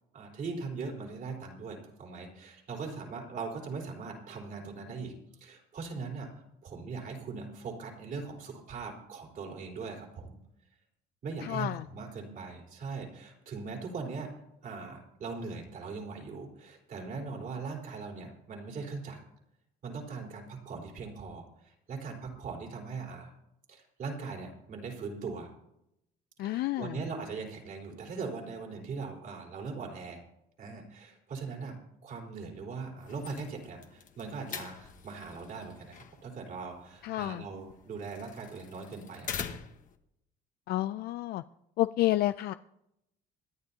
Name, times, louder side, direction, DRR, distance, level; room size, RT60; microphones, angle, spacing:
voice 1, 0.1-5.1 5.4-6.3 6.6-10.4 11.2-14.3 14.6-19.2 19.8-23.3 23.7-25.5 26.4-30.2 30.6-39.4, right 4 dB, 55° right, 0 dB, 4.0 m, -40 dB
voice 2, 11.4-11.8 26.4-27.0 37.0-37.4 40.7-41.4 41.8-42.5, left 15 dB, 70° left, 12 dB, 0.4 m, -30 dB
sound 1, 33.0-40.0, left 7 dB, 50° left, 1.3 m, -45 dB
27.0 x 10.5 x 2.8 m, 0.82 s
cardioid pair, 110°, 17 cm